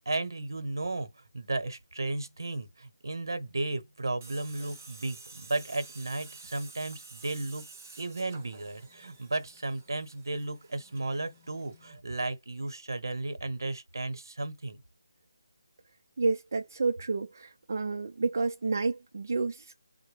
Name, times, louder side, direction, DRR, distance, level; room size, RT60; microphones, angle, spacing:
voice 1, 0.0-7.7 8.0-14.8, right 2 dB, 80° right, 0.9 m, -34 dB
Tools, 4.2-12.0, right 3 dB, 20° right, 0.9 m, -51 dB
voice 2, 16.2-19.9, right 3 dB, 50° right, 0.4 m, -30 dB
3.7 x 2.1 x 3.3 m
figure-of-eight pair, 170°, 2 cm